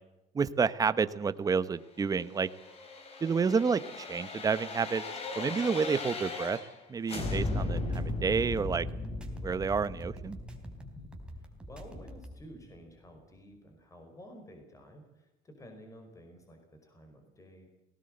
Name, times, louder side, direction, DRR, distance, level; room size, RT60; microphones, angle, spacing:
voice 1, 0.3-2.5 3.2-5.0 5.4-6.6 6.9-8.9 9.4-10.4, right 5 dB, 25° right, 14 dB, 1.0 m, -29 dB
sound 1, 2.1-6.8 7.1-11.9 12.3-12.4, left 2 dB, 40° left, 4.9 m, -37 dB
sound 2, 7.3-12.4, right 1 dB, 5° right, 3.7 m, -46 dB
voice 2, 11.3-17.7, equal, 20° left, 5 dB, 5.1 m, -52 dB
19.0 x 18.5 x 7.8 m, 0.99 s
cardioid pair, 135°, 16 cm